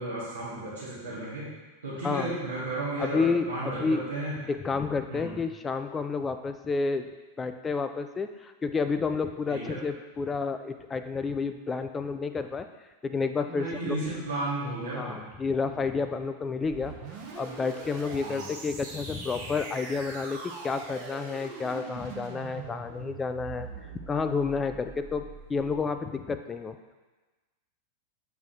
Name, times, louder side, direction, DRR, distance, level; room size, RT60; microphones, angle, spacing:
voice 1, 0.0-1.5 1.8-4.4 5.1-5.3 9.5-9.8 13.5-15.3 15.7-15.9 18.2-18.4, right 2 dB, 70° right, -11 dB, 1.9 m, -34 dB
voice 2, 3.0-4.0 4.5-7.1 7.4-12.7 13.0-14.0 14.9-16.9 17.4-23.7 24.1-25.2 25.5-26.9, left 4 dB, 15° left, 8 dB, 0.3 m, -30 dB
sound 1, 16.6-25.8, right 4 dB, 45° right, 1.1 m, -42 dB
8.1 x 4.6 x 2.9 m, 1.2 s
figure-of-eight pair, 90°, 0 cm